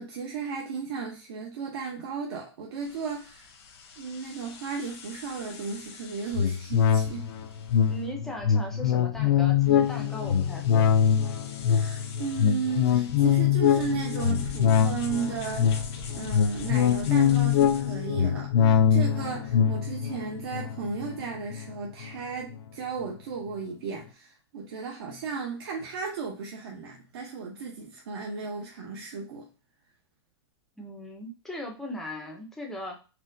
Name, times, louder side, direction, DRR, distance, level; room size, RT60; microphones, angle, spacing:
voice 1, 0.0-3.5 4.0-7.3 11.7-15.8 16.1-29.5, right 5 dB, 65° right, 0.7 m, -35 dB
sound 1, 2.7-18.1, left 4 dB, 80° left, 1.0 m, -46 dB
sound 2, 6.3-22.1 22.5-22.6, left 8 dB, 60° left, 0.4 m, -24 dB
voice 2, 7.8-10.9 30.8-33.0, equal, ahead, 0.5 m, -38 dB
4.3 x 2.1 x 2.5 m
supercardioid pair, 170°, 14 cm